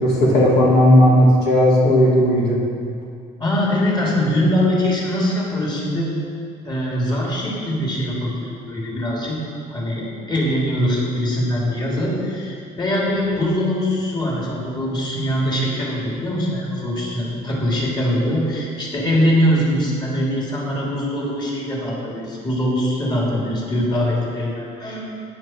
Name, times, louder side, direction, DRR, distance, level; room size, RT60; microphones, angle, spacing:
voice 1, 0.0-2.6, equal, 75° left, -4 dB, 2.6 m, -14 dB
voice 2, 3.4-6.1 6.6-9.4 9.7-25.0, equal, 25° left, -4 dB, 3.0 m, -22 dB
14.0 x 9.8 x 4.5 m, 2.3 s
cardioid pair, 110°, 17 cm